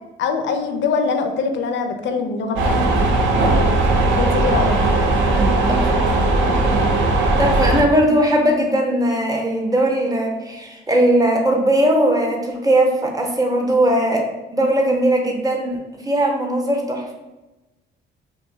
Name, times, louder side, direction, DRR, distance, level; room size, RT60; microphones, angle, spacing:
voice 1, 0.2-3.1 4.1-4.8, left 4 dB, 70° left, 6 dB, 0.5 m, -23 dB
sound 1, 2.6-7.8, right 2 dB, 75° right, 0.5 m, -18 dB
voice 2, 5.7-6.1 7.4-14.2 14.5-15.8 16.1-17.1, right 1 dB, 20° right, 1 dB, 0.6 m, -19 dB
2.7 x 2.6 x 2.6 m, 1.1 s
cardioid pair, 90°, 20 cm